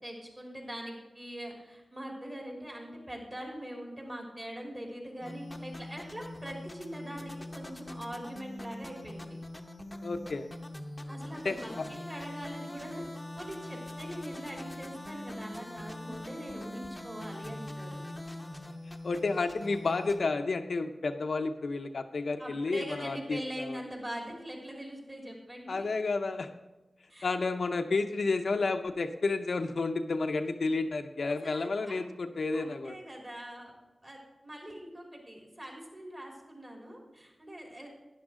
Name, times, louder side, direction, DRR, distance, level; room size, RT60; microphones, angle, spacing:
voice 1, 0.0-9.4 11.1-13.0 13.4-18.0 22.4-25.9 27.1-27.3 31.4-32.1 32.5-33.7 34.0-34.2 34.4-37.9, equal, 30° right, -1 dB, 3.3 m, -42 dB
sound 1, 5.2-20.2, left 1 dB, 15° left, 0.8 m, -43 dB
voice 2, 10.0-10.5 11.4-11.8 19.0-23.8 25.7-26.5 27.2-32.9, left 3 dB, 70° left, 6 dB, 0.6 m, -31 dB
12.5 x 10.0 x 3.7 m, 1.0 s
wide cardioid pair, 80°, 0 cm